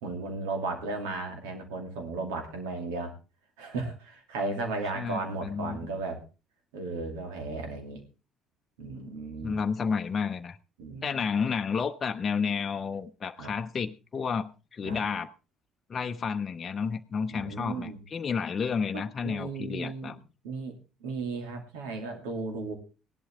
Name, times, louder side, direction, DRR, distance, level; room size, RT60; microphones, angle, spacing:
voice 1, 0.0-3.1 3.6-6.2 6.7-8.0 8.8-9.6 10.8-11.2 13.4-13.5 14.8-15.0 17.3-18.0 18.9-20.2 20.4-22.7, right 3 dB, 75° right, 5 dB, 2.6 m, -35 dB
voice 2, 4.9-5.8 9.4-10.6 11.0-15.3 15.9-20.2, left 6 dB, 40° left, 7 dB, 0.7 m, -31 dB
17.5 x 11.5 x 3.6 m, 0.32 s
hypercardioid pair, 55°, 0 cm